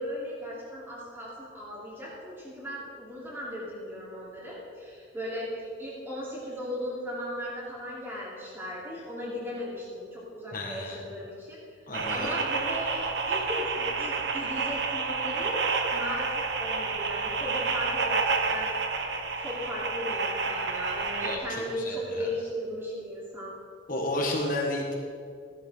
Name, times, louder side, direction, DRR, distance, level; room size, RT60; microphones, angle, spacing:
voice 1, 0.0-5.5 5.8-11.6 12.1-15.6 15.9-18.7 19.4-23.5, equal, 10° right, -7 dB, 3.6 m, -37 dB
voice 2, 10.5-11.0 11.9-12.3 21.2-22.3 23.9-24.9, left 1 dB, 45° left, 0 dB, 1.5 m, -32 dB
sound 1, 11.9-21.4, right 4 dB, 55° right, 1.0 m, -29 dB
15.0 x 11.5 x 3.8 m, 2.3 s
head